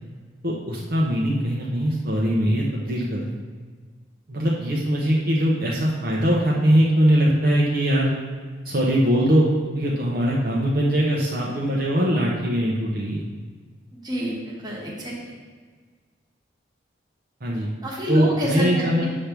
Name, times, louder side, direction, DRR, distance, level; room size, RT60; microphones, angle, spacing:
voice 1, 0.4-3.2 4.3-8.1 8.6-9.5 9.7-13.3 17.4-17.7 18.1-19.0, equal, 50° right, -4 dB, 0.9 m, -21 dB
voice 2, 13.9-15.3 17.8-19.1, equal, 20° right, -4 dB, 1.4 m, -28 dB
8.5 x 3.5 x 6.0 m, 1.5 s
head